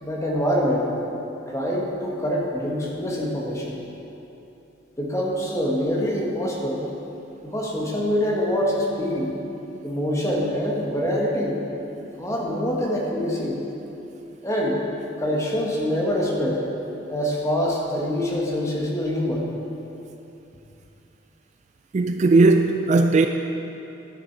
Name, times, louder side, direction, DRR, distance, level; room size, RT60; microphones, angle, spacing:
voice 1, 0.0-0.9 1.5-3.8 5.0-6.8 7.4-9.3 9.8-11.6 12.2-13.6 14.4-14.8 15.2-16.6 17.1-19.5, equal, 15° left, -3 dB, 1.3 m, -25 dB
voice 2, 21.9-23.3, right 3 dB, 40° right, 6 dB, 0.3 m, -17 dB
11.5 x 6.8 x 4.6 m, 2.9 s
head